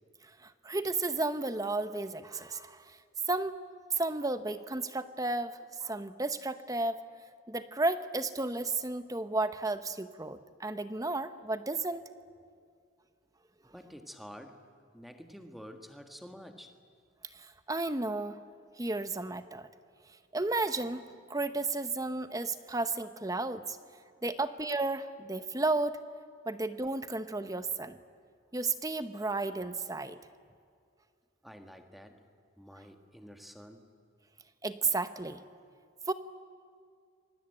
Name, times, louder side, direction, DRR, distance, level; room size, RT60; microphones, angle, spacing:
voice 1, 0.4-2.8 3.3-3.6 4.0-7.0 7.5-12.0 17.3-18.4 18.8-19.7 20.3-21.0 21.3-23.8 24.2-26.0 26.5-28.0 28.5-30.2 34.6-35.4 36.1-36.2, right 2 dB, 15° right, 11 dB, 0.8 m, -33 dB
voice 2, 13.7-14.6 14.9-16.8 23.8-23.9 24.2-24.3 31.4-32.2 32.6-33.9, equal, ahead, 5 dB, 1.5 m, -49 dB
27.5 x 23.5 x 9.0 m, 2.2 s
head